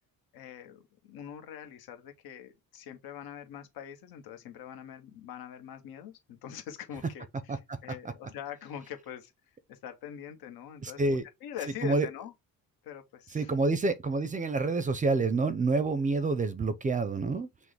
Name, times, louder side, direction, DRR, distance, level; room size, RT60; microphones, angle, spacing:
voice 1, 0.3-9.3 9.7-12.3 12.8-13.5, left 10 dB, 85° left, 0.9 m, -43 dB
voice 2, 10.8-11.2 11.8-12.1 13.3-17.5, right 3 dB, 20° right, 0.4 m, -28 dB
6.0 x 2.1 x 3.2 m
cardioid pair, 150°, 36 cm